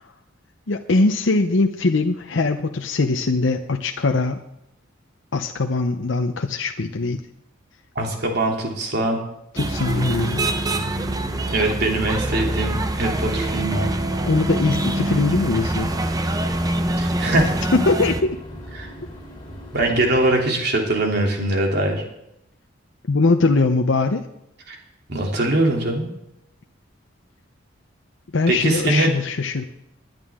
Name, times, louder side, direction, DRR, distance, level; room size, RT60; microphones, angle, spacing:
voice 1, 0.7-4.4 5.3-7.2 9.5-10.5 14.2-15.9 17.7-18.2 23.1-24.2 28.3-29.6, left 3 dB, 70° left, 5 dB, 0.7 m, -21 dB
voice 2, 7.9-9.2 11.5-13.9 17.0-17.6 18.7-18.9 19.7-22.0 24.7-24.8 25.1-26.1 28.5-29.1, right 2 dB, 55° right, 0 dB, 3.0 m, -22 dB
sound 1, 9.6-18.2, right 1 dB, 20° right, 0.7 m, -24 dB
sound 2, 9.7-20.4, left 1 dB, 25° left, 3.6 m, -38 dB
20.0 x 10.5 x 3.7 m, 0.82 s
head